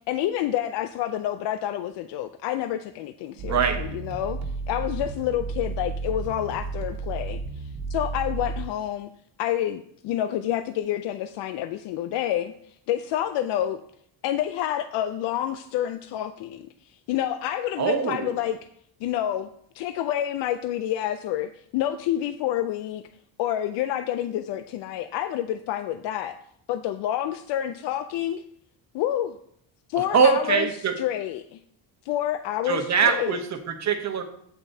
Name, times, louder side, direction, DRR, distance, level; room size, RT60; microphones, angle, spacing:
voice 1, 0.1-4.4 4.7-9.1 9.4-13.8 14.2-16.7 17.1-18.6 19.0-19.5 19.7-23.0 23.4-26.4 26.7-28.4 28.9-29.4 29.9-30.7 31.0-31.6 32.1-33.4, left 11 dB, 80° left, 10 dB, 0.5 m, -28 dB
voice 2, 3.4-3.8 17.8-18.4 30.0-31.0 32.7-34.2, right 6 dB, 40° right, 5 dB, 1.0 m, -23 dB
sound 1, 3.4-8.7, right 4 dB, 75° right, 1.4 m, -32 dB
8.7 x 8.4 x 2.7 m, 0.68 s
cardioid pair, 130°, 42 cm